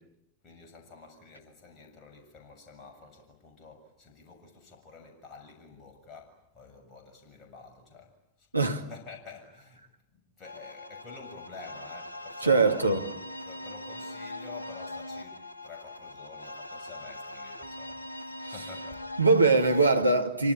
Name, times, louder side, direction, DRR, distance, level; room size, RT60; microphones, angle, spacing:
voice 1, 0.4-8.5 8.9-9.9 10.1-13.1 13.4-19.1, left 4 dB, 25° left, 6.9 m, -49 dB
voice 2, 8.5-8.8 12.4-13.0 18.4-18.5 19.2-20.5, right 3 dB, 85° right, 2.3 m, -22 dB
sound 1, 10.4-20.0, left 1 dB, 85° left, 1.3 m, -41 dB
26.5 x 25.0 x 8.7 m
figure-of-eight pair, 90°, 0 cm